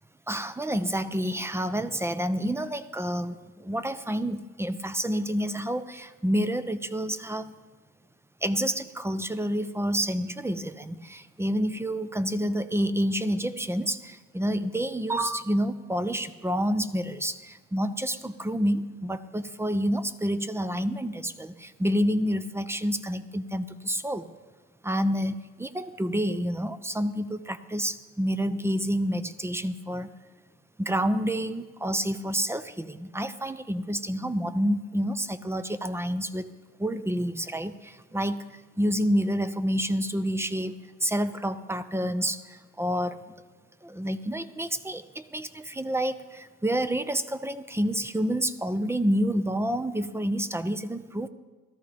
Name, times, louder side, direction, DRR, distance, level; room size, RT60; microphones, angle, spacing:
voice 1, 0.3-7.5 8.4-24.3 24.8-30.1 30.8-36.5 36.8-43.2 43.8-51.3, equal, 10° right, 13 dB, 0.6 m, -28 dB
17.5 x 13.5 x 3.5 m, 1.4 s
cardioid pair, 90°, 30 cm